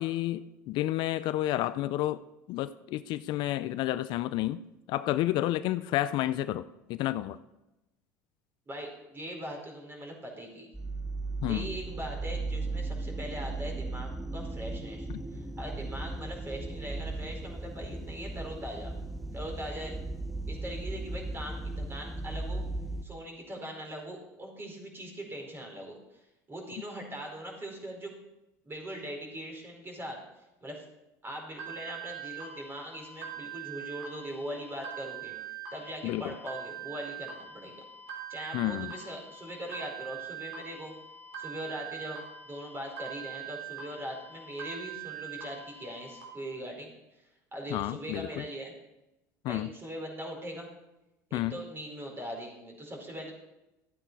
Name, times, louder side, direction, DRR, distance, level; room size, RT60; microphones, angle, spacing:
voice 1, 0.0-2.2 2.5-4.6 4.9-7.4 11.4-11.7 15.1-15.2 36.0-36.4 38.5-38.9 47.7-48.4 49.4-49.7 51.3-51.6, left 15 dB, 60° left, 14 dB, 0.5 m, -30 dB
voice 2, 8.7-10.7 11.4-18.9 19.3-19.9 20.5-22.6 23.0-26.2 26.5-28.1 28.6-30.8 31.2-35.3 35.7-37.7 38.3-40.9 41.4-46.9 47.5-48.7 49.4-50.7 51.3-53.3, equal, 25° right, 1 dB, 4.7 m, -41 dB
sound 1, 10.7-23.0, right 2 dB, ahead, 0.9 m, -36 dB
sound 2, 31.6-46.2, right 8 dB, 75° right, 3.7 m, -43 dB
13.5 x 8.9 x 4.7 m, 0.95 s
hypercardioid pair, 85°, 9 cm